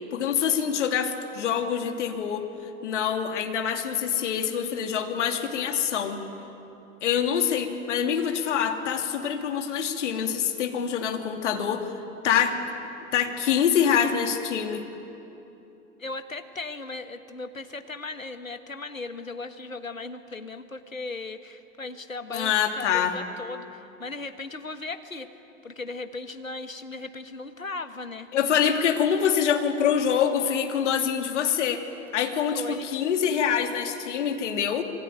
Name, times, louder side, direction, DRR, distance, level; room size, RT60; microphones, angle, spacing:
voice 1, 0.1-2.4 2.8-6.2 7.0-11.9 12.2-12.6 13.1-14.8 22.3-23.1 28.3-31.8 32.1-34.8, left 8 dB, 65° left, 4 dB, 2.8 m, -25 dB
voice 2, 16.0-28.3 32.5-32.9, left 3 dB, 85° left, 9 dB, 1.5 m, -37 dB
27.0 x 23.0 x 9.2 m, 2.9 s
figure-of-eight pair, 85°, 39 cm